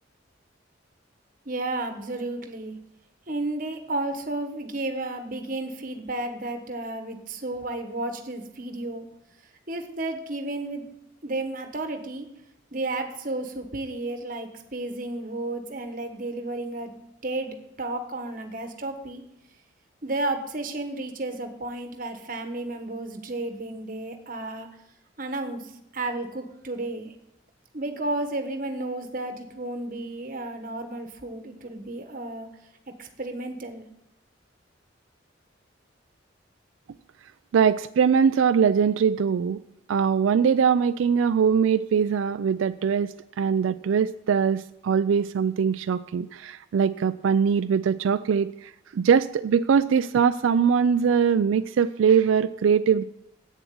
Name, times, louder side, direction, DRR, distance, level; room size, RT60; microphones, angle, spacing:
voice 1, 1.5-2.7 3.3-9.1 9.7-10.8 11.2-12.3 12.7-16.9 17.2-19.2 20.0-24.7 25.2-27.1 27.7-32.5 33.0-33.8, right 2 dB, 45° right, 6 dB, 1.2 m, -32 dB
voice 2, 37.5-39.6 39.9-53.0, right 7 dB, 90° right, 11 dB, 0.3 m, -22 dB
8.3 x 7.2 x 8.5 m, 0.84 s
head